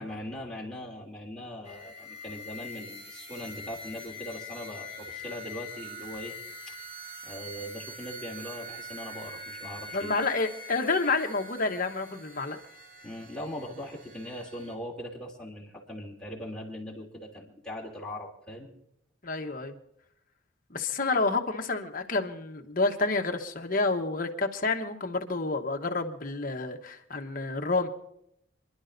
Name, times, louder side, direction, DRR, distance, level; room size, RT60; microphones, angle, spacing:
voice 1, 0.0-6.3 6.7-6.8 7.2-10.1 13.0-18.7, left 1 dB, 5° left, -4 dB, 2.9 m, -40 dB
sound 1, 1.6-14.7, left 1 dB, 60° right, 3.7 m, -44 dB
voice 2, 9.9-12.6 19.2-19.8 20.7-27.9, left 3 dB, 45° left, 5 dB, 1.1 m, -29 dB
29.0 x 11.5 x 2.7 m, 0.78 s
head